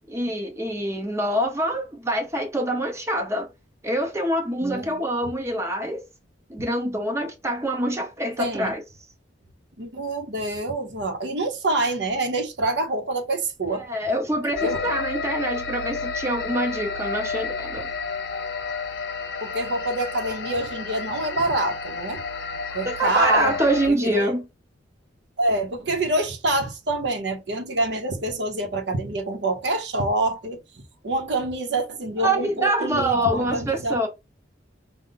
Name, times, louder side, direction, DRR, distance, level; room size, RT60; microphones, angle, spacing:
voice 1, 0.1-3.5 3.8-6.0 6.5-8.8 13.8-17.9 22.8-24.4 32.2-34.1, right 1 dB, 15° right, 0.7 m, -25 dB
voice 2, 4.6-5.0 8.4-8.8 9.8-13.9 14.6-14.9 19.4-22.2 22.7-23.5 23.9-24.2 25.4-34.1, right 2 dB, 65° right, 0.9 m, -26 dB
sound 1, 14.6-23.9, left 4 dB, 70° left, 0.9 m, -31 dB
5.4 x 2.2 x 3.8 m
head